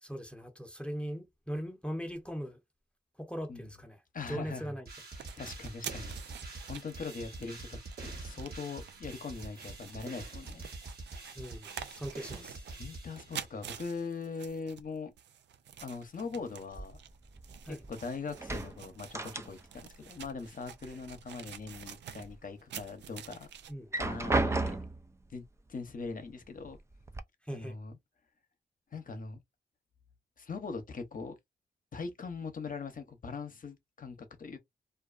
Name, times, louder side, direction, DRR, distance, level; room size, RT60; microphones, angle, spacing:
voice 1, 0.0-2.6 3.2-4.0 4.3-4.9 11.3-12.6 17.6-17.8 23.7-24.0 27.4-27.8, equal, 5° left, 0.8 m, -40 dB
voice 2, 4.1-4.8 5.1-6.4 6.7-10.7 12.4-12.5 12.8-15.1 15.8-17.0 17.7-23.5 23.9-24.8 25.3-25.4 25.7-26.8 27.5-28.0 28.9-29.4 30.4-31.3 31.9-34.6, left 4 dB, 50° left, 0.8 m, -41 dB
sound 1, 4.9-13.7, right 3 dB, 55° right, 1.2 m, -46 dB
sound 2, 5.2-23.7, right 9 dB, 75° right, 0.4 m, -48 dB
sound 3, 16.7-18.0 18.3-19.9 20.2-21.2 21.6-22.4 22.8-22.9 23.7-25.1 26.1-26.2 26.6-27.2, right 2 dB, 15° right, 0.4 m, -34 dB
2.5 x 2.2 x 2.4 m
supercardioid pair, 40°, 18 cm